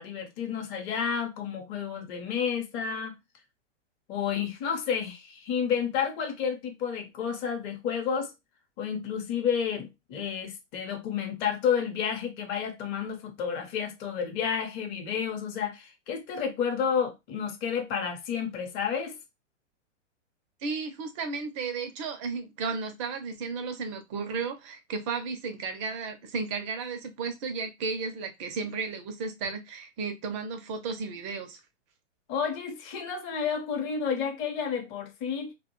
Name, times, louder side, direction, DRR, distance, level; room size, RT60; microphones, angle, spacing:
voice 1, 0.0-3.1 4.1-8.3 8.8-19.1 32.3-35.5, left 7 dB, 30° left, 0.6 m, -30 dB
voice 2, 20.6-31.6, right 4 dB, 25° right, 0.4 m, -34 dB
2.2 x 2.1 x 2.9 m
hypercardioid pair, 120°, 37 cm